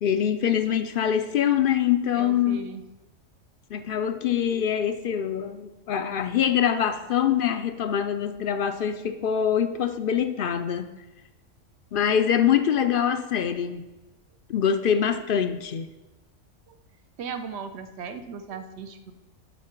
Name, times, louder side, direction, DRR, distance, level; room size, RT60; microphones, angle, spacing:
voice 1, 0.0-2.7 3.7-10.9 11.9-13.8 14.5-15.9, left 9 dB, 60° left, 9 dB, 0.6 m, -24 dB
voice 2, 2.1-2.8 16.7-16.8 17.2-19.1, right 6 dB, 65° right, 9 dB, 0.9 m, -37 dB
8.3 x 5.8 x 5.8 m, 1.1 s
omnidirectional pair, 1.3 m